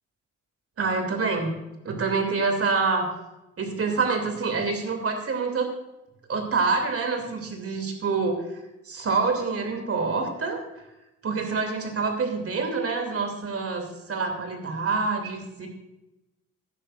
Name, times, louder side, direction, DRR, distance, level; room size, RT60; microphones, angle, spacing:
voice 1, 0.8-1.5 1.8-3.1 3.6-5.7 6.3-8.6 8.9-10.6 11.2-15.7, right 4 dB, 40° right, 4 dB, 2.7 m, -26 dB
15.0 x 13.0 x 2.5 m, 0.96 s
figure-of-eight pair, 40°, 36 cm